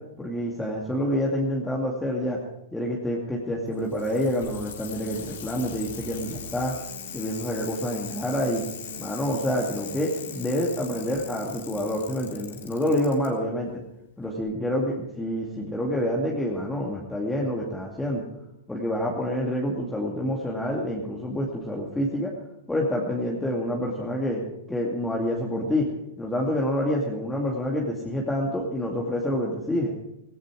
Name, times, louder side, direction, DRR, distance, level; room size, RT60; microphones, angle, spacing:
voice 1, 0.2-2.4 2.7-6.7 7.1-8.6 9.0-13.8 14.2-18.2 18.7-22.3 22.7-24.4 24.7-25.9 26.2-29.9, equal, 5° left, -3 dB, 2.5 m, -27 dB
Bicycle, 3.7-13.3 14.4-14.5, left 8 dB, 70° left, 3.7 m, -40 dB
sound 1, 4.9-12.0, right 4 dB, 65° right, 3.3 m, -46 dB
17.0 x 15.5 x 4.8 m, 0.87 s
hypercardioid pair, 120°, 0 cm